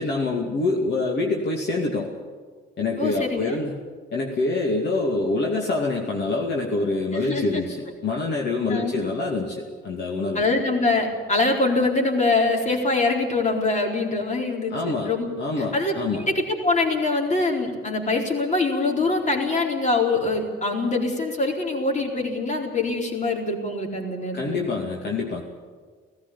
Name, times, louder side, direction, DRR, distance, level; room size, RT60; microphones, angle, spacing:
voice 1, 0.0-2.1 2.8-3.8 4.1-10.4 14.7-15.1 15.4-16.3 24.3-25.4, left 3 dB, 60° left, -1 dB, 2.6 m, -26 dB
voice 2, 3.0-3.6 7.1-7.6 8.7-8.9 10.3-14.7 15.0-15.3 15.6-24.6, left 3 dB, 35° left, 2 dB, 4.2 m, -24 dB
17.5 x 15.0 x 10.0 m, 1.5 s
cardioid pair, 90°, 20 cm